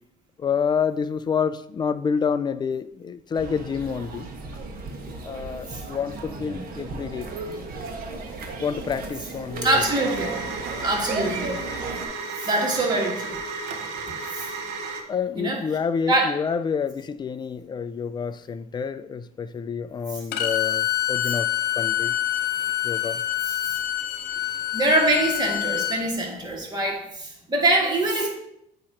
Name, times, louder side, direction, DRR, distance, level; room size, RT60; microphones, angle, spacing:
voice 1, 0.4-4.3 5.2-7.3 8.6-9.7 15.1-21.5 21.8-22.2 22.8-23.2, left 6 dB, 25° left, 13 dB, 0.3 m, -28 dB
sound 1, 3.3-12.1, right 3 dB, 60° right, 1.1 m, -35 dB
voice 2, 9.6-10.3 10.8-11.6 12.4-13.4 14.3-14.5 15.4-15.6 16.1-16.3 20.1-20.2 23.5-23.8 24.7-28.3, right 2 dB, 25° right, -1 dB, 1.8 m, -24 dB
sound 2, 9.7-15.0, right 4 dB, 85° right, 0.8 m, -33 dB
Bowed string instrument, 20.3-26.0, left 12 dB, 75° left, 0.6 m, -26 dB
8.6 x 2.9 x 4.4 m, 0.78 s
cardioid pair, 110°, 17 cm